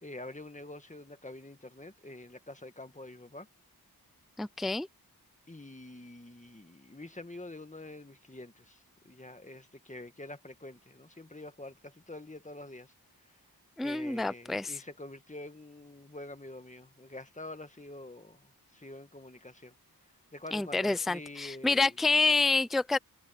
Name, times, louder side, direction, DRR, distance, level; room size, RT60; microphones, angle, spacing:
voice 1, 0.0-3.5 5.5-12.9 13.8-19.8 20.3-21.9 22.3-22.4, left 2 dB, 20° left, 2.0 m, -46 dB
voice 2, 4.4-4.9 13.8-14.8 20.5-23.0, left 3 dB, ahead, 0.4 m, -28 dB
wide cardioid pair, 80°, 38 cm